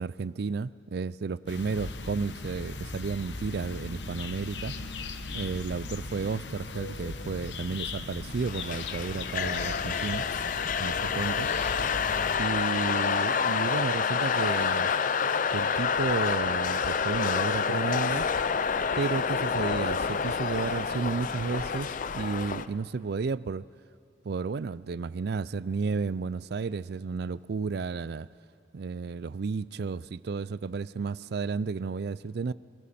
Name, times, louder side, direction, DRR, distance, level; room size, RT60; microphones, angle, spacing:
voice 1, 0.0-4.7 5.3-10.2 10.8-11.5 12.4-14.9 15.5-18.3 19.0-23.7 24.2-28.3 28.7-32.5, right 4 dB, 65° right, 19 dB, 0.4 m, -32 dB
sound 1, 1.5-12.4, left 3 dB, 85° left, 1.1 m, -38 dB
sound 2, 8.4-22.7, left 6 dB, 45° left, 0.5 m, -28 dB
28.0 x 23.5 x 4.3 m, 2.3 s
head